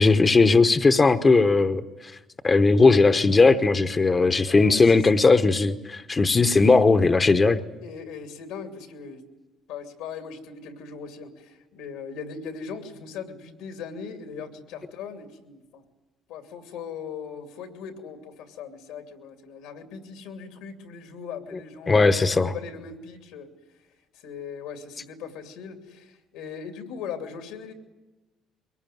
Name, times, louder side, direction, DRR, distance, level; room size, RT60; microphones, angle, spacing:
voice 1, 0.0-1.8 2.4-7.6 21.9-22.5, left 3 dB, 30° left, 9 dB, 1.0 m, -18 dB
voice 2, 4.5-5.0 7.8-9.2 9.7-15.8 16.3-23.5 24.1-27.7, left 6 dB, 85° left, 6 dB, 2.6 m, -39 dB
22.5 x 18.5 x 9.3 m, 1.1 s
supercardioid pair, 80°, 0 cm